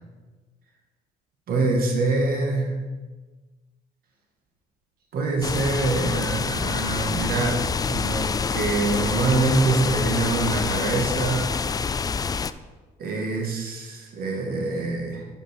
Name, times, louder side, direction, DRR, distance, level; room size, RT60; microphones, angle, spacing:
voice 1, 1.5-2.9 5.1-11.6 13.0-15.2, right 3 dB, 60° right, 1 dB, 2.3 m, -25 dB
sound 1, 5.4-12.5, left 5 dB, 20° left, 0.4 m, -27 dB
8.5 x 6.1 x 6.8 m, 1.3 s
cardioid pair, 110°, 17 cm